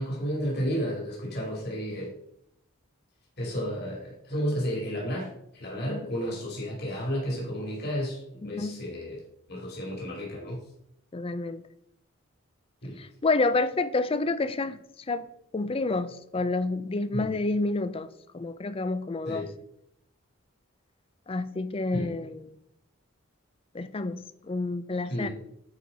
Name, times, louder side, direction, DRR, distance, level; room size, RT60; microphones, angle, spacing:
voice 1, 0.0-2.1 3.4-9.2 9.5-10.6 12.8-13.0 17.1-17.3 19.3-19.5 21.9-22.1 25.1-25.3, equal, 50° left, -3 dB, 2.6 m, -32 dB
voice 2, 8.4-8.8 11.1-11.6 13.0-14.8 15.1-15.2 15.5-18.1 18.3-19.4 21.3-22.6 23.7-25.3, left 3 dB, 25° left, 13 dB, 0.4 m, -29 dB
9.7 x 4.7 x 3.9 m, 0.75 s
head